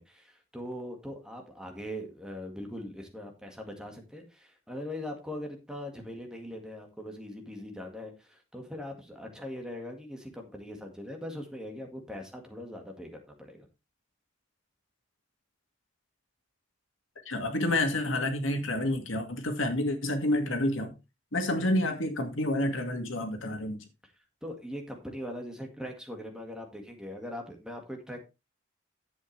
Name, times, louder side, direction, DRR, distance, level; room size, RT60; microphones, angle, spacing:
voice 1, 0.0-13.7 24.4-28.2, left 1 dB, 5° right, 1.9 m, -41 dB
voice 2, 17.3-20.9 21.3-23.8, left 1 dB, 85° left, 2.2 m, -29 dB
11.0 x 8.1 x 3.3 m
head